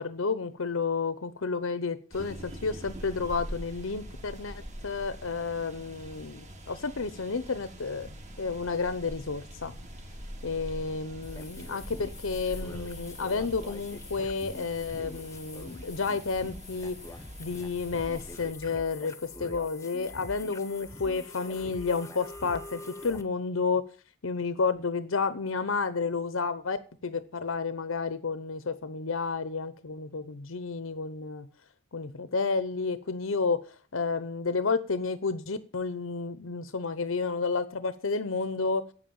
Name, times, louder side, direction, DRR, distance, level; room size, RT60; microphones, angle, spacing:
voice 1, 0.0-8.1 8.4-9.7 10.4-17.0 17.4-23.8 24.2-26.8 27.0-31.5 31.9-33.6 33.9-38.8, left 4 dB, 70° left, 13 dB, 0.8 m, -31 dB
sound 1, 2.1-18.5, equal, 35° right, 2.1 m, -44 dB
sound 2, 11.2-23.2, left 2 dB, 15° left, 0.9 m, -44 dB
9.1 x 8.3 x 8.7 m, 0.40 s
head